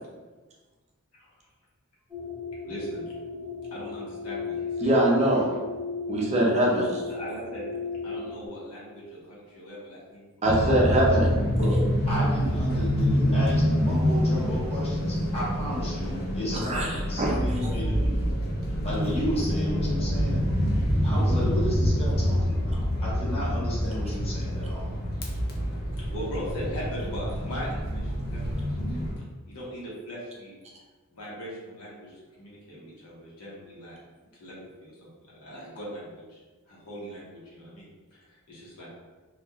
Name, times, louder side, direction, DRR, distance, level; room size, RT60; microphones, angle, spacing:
sound 1, 2.1-8.5, left 4 dB, 15° right, 0.9 m, -35 dB
voice 1, 2.7-3.1 3.7-5.0 7.1-7.7 8.0-10.2 25.5-28.7 29.4-30.6 31.1-34.0 34.3-34.6 34.8-38.9, equal, 85° left, -6 dB, 0.9 m, -40 dB
voice 2, 4.8-5.5 6.1-7.0 10.4-11.4 16.6-17.7, right 1 dB, 30° right, -2 dB, 0.4 m, -23 dB
sound 2, 10.4-29.1, equal, 45° left, 0.5 m, -26 dB
voice 3, 12.1-18.2 18.8-20.4 21.0-22.7 23.0-24.9, left 1 dB, 30° left, -8 dB, 1.0 m, -33 dB
2.9 x 2.3 x 2.3 m, 1.3 s
head